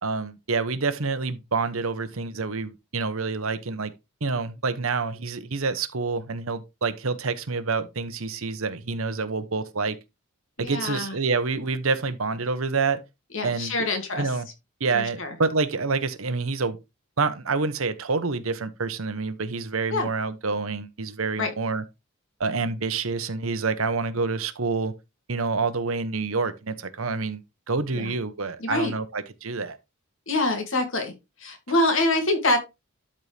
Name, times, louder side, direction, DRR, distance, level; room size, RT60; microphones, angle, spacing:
voice 1, 0.0-3.9 4.2-10.0 10.6-13.0 13.4-13.9 14.2-14.5 14.8-16.8 17.2-21.8 22.4-24.9 25.3-27.4 27.7-29.8, right 4 dB, 70° right, 1.0 m, -27 dB
voice 2, 10.6-11.1 13.3-14.3 14.9-15.3 19.9-20.1 21.4-21.5 27.9-28.1 28.6-28.9 30.3-31.1 31.4-32.6, left 2 dB, 60° left, 2.4 m, -25 dB
12.5 x 4.4 x 3.4 m
head